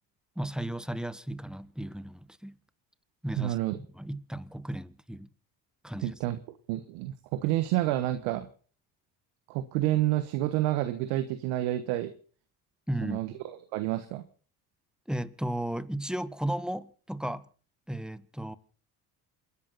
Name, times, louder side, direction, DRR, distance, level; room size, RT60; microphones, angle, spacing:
voice 1, 0.3-2.6 3.2-3.6 3.9-5.3 5.8-6.2 12.9-13.2 15.1-17.5 17.9-18.6, right 1 dB, ahead, 1.4 m, -34 dB
voice 2, 3.4-3.8 6.0-6.4 6.7-8.5 9.5-12.1 13.0-14.2, right 14 dB, 85° right, 1.3 m, -29 dB
28.0 x 11.0 x 4.1 m
hypercardioid pair, 65°, 44 cm